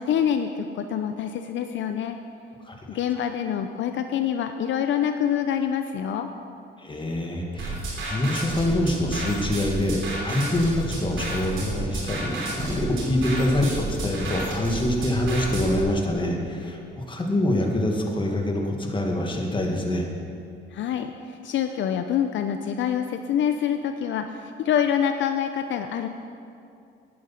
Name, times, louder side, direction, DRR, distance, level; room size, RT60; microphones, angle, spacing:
voice 1, 0.0-2.2 2.9-6.3 20.7-26.1, left 9 dB, 70° left, 7 dB, 0.6 m, -26 dB
voice 2, 6.8-20.1, left 1 dB, 25° left, 1 dB, 1.9 m, -25 dB
sound 1, 7.6-15.8, right 2 dB, 75° right, 2.9 m, -31 dB
11.0 x 8.7 x 5.7 m, 2.5 s
cardioid pair, 90°, 20 cm